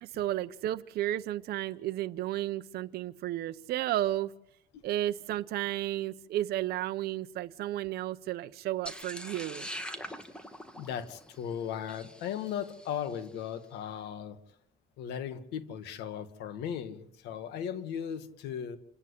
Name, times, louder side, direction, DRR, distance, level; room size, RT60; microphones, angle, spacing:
voice 1, 0.0-4.3 4.8-9.7, right 14 dB, 70° right, 11 dB, 0.7 m, -33 dB
sound 1, 8.9-13.2, equal, 5° left, 2.0 m, -43 dB
voice 2, 10.8-14.4 15.0-18.8, left 8 dB, 85° left, 9 dB, 1.9 m, -37 dB
27.5 x 10.0 x 9.8 m, 0.76 s
cardioid pair, 110°, 17 cm